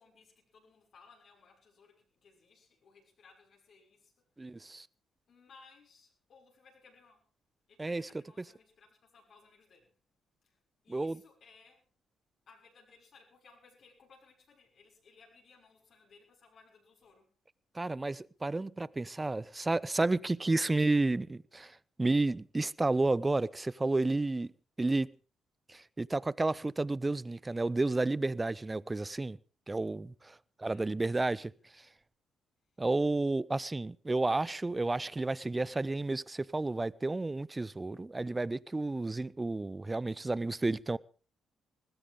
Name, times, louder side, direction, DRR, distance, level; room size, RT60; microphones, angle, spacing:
voice 1, 0.0-4.7 5.3-7.3 7.7-9.9 10.4-11.9 12.5-17.3 30.7-31.8, left 4 dB, 55° left, 6.2 m, -62 dB
voice 2, 4.4-4.9 7.8-8.0 10.9-11.2 17.7-24.5 24.8-25.1 25.7-29.4 29.7-31.5 32.8-41.0, right 2 dB, 25° right, 0.6 m, -31 dB
19.5 x 16.0 x 3.7 m
hypercardioid pair, 45°, 0 cm